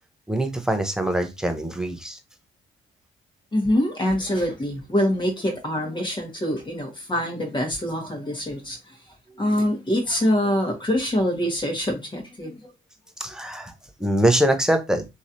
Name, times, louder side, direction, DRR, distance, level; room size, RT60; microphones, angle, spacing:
voice 1, 0.3-2.2 13.2-13.7 14.0-15.1, right 1 dB, 5° right, 0.7 m, -23 dB
voice 2, 3.5-9.0 9.4-12.6, left 1 dB, 25° left, 1.4 m, -25 dB
3.0 x 2.8 x 2.6 m
cardioid pair, 90°, 20 cm